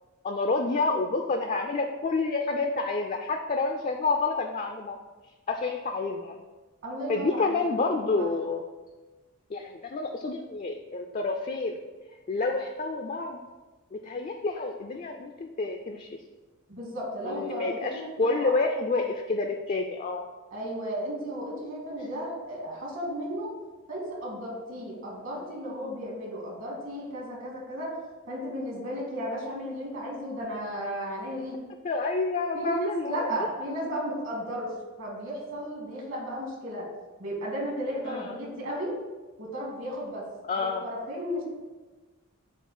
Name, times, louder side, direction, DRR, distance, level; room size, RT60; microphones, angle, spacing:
voice 1, 0.2-5.0 5.5-6.4 7.1-8.6 9.5-11.8 12.3-13.4 13.9-16.1 17.2-20.3 31.8-33.5 38.0-38.4 40.5-40.8, left 3 dB, 35° left, 4 dB, 0.3 m, -29 dB
voice 2, 6.8-7.9 8.2-8.3 16.7-18.5 20.5-23.5 23.9-27.9 28.3-31.6 32.5-34.7 35.0-36.9 37.2-38.9 39.4-40.3 40.5-41.4, equal, 65° right, -3 dB, 1.9 m, -34 dB
7.0 x 2.4 x 5.5 m, 1.2 s
head